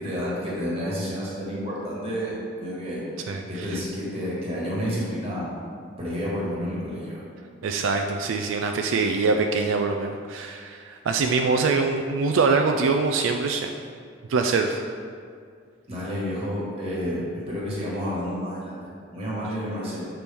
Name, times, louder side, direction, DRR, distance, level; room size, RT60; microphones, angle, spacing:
voice 1, 0.0-3.1 3.5-5.5 6.0-7.3 15.9-20.1, equal, 30° right, -6 dB, 1.6 m, -30 dB
voice 2, 3.3-3.7 7.6-13.7 14.3-14.8, right 4 dB, 80° right, 4 dB, 0.3 m, -24 dB
6.9 x 4.5 x 3.4 m, 2.2 s
head